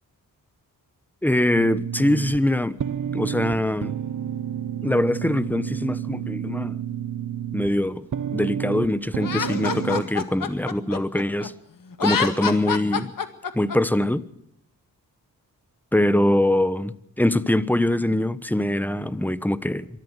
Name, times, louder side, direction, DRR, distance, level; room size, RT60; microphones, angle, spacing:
voice 1, 1.2-2.8 3.1-4.0 4.8-6.8 7.5-8.0 8.3-11.5 12.0-13.1 13.5-14.2 15.9-19.9, left 1 dB, 5° left, 1.2 m, -23 dB
sound 1, 1.5-10.0, right 9 dB, 60° right, 0.9 m, -30 dB
Laughter, 9.2-11.5 11.9-13.8, left 6 dB, 65° left, 1.9 m, -27 dB
24.0 x 13.5 x 8.3 m
cardioid pair, 70°, 35 cm